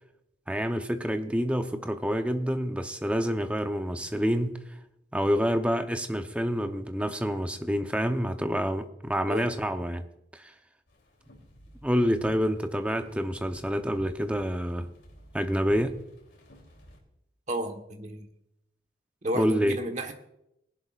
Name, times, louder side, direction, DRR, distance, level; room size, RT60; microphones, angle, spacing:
voice 1, 0.5-4.6 5.1-10.0 10.3-10.5 11.8-14.9 15.3-16.0 19.3-19.8, equal, 5° right, 0.8 m, -27 dB
sound 1, 10.9-17.0, left 1 dB, 90° left, 3.1 m, -52 dB
voice 2, 17.5-18.3 19.2-20.1, equal, 40° right, 1.3 m, -32 dB
20.0 x 11.0 x 2.5 m
head